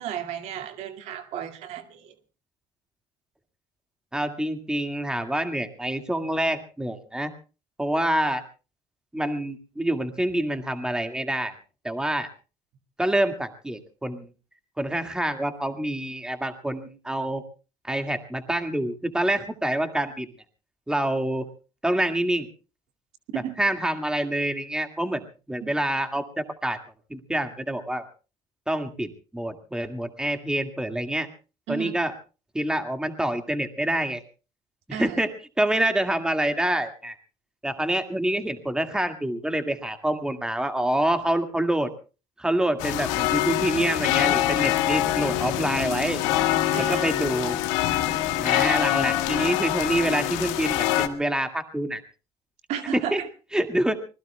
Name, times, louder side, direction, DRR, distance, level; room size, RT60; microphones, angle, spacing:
voice 1, 0.0-2.1 23.3-23.5 25.6-25.7 31.7-31.9 34.9-35.2 46.7-47.0 52.7-53.3, right 9 dB, 70° right, 2.2 m, -33 dB
voice 2, 4.1-7.3 7.8-8.4 9.1-11.5 11.8-12.3 13.0-14.3 14.8-17.4 17.9-20.3 20.9-21.5 21.8-22.5 23.6-25.2 25.5-26.8 27.1-28.0 28.7-31.3 31.7-32.1 32.5-34.2 34.9-37.2 37.6-41.9 42.4-46.2 46.8-47.6 48.4-52.0 52.9-53.2 53.5-54.0, right 1 dB, 5° right, 2.0 m, -26 dB
sound 1, 42.8-51.1, left 14 dB, 90° left, 1.5 m, -24 dB
25.5 x 20.5 x 2.3 m
supercardioid pair, 95°, 12 cm